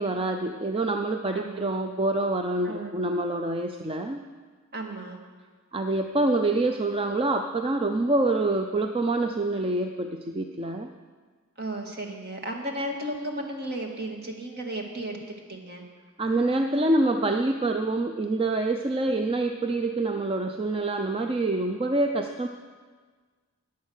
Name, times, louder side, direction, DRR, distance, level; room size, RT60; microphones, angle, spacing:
voice 1, 0.0-4.2 5.7-10.9 16.2-22.5, right 2 dB, 25° right, 5 dB, 0.5 m, -26 dB
voice 2, 1.3-1.7 2.6-3.0 4.7-5.2 11.6-15.2 15.5-15.8, right 1 dB, 50° right, 2 dB, 2.0 m, -34 dB
14.0 x 9.5 x 6.5 m, 1.5 s
head